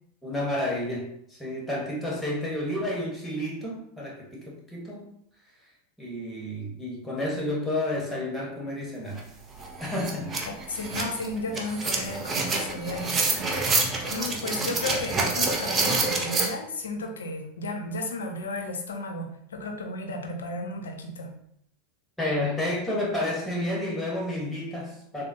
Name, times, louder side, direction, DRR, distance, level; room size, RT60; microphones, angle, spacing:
voice 1, 0.2-5.1 6.0-9.2 9.8-10.3 13.3-13.4 22.2-25.2, left 1 dB, 5° left, -3 dB, 1.2 m, -30 dB
sound 1, 9.2-9.3 9.6-16.5, right 3 dB, 30° right, 0.7 m, -27 dB
voice 2, 10.5-13.5 14.1-21.3, left 2 dB, 85° left, 4 dB, 0.5 m, -34 dB
3.5 x 2.1 x 2.7 m, 0.72 s
hypercardioid pair, 95°, 0 cm